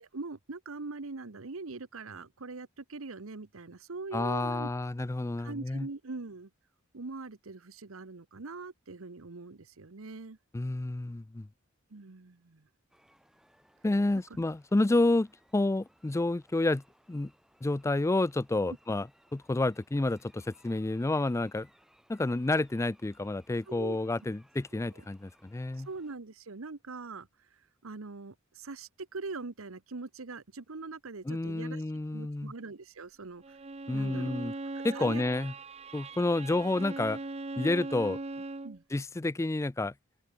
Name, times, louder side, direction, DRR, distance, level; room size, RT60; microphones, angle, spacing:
voice 1, 0.0-4.7 5.4-6.5 6.9-10.4 11.9-12.7 23.7-24.0 24.9-25.1 25.8-31.8 32.1-33.6 33.9-34.4 34.7-35.2 38.6-38.8, right 3 dB, 85° right, 1.0 m, -42 dB
voice 2, 4.1-5.9 10.5-11.5 13.8-16.8 17.1-17.3 17.6-21.7 22.1-25.9 31.3-32.5 33.9-34.5 34.8-35.5 35.9-37.2 37.6-38.2 38.9-39.9, left 2 dB, 15° left, 0.4 m, -29 dB
sound 1, 12.9-26.2, equal, ahead, 2.1 m, -65 dB
Bowed string instrument, 33.4-38.8, right 3 dB, 30° right, 0.8 m, -40 dB
open air
head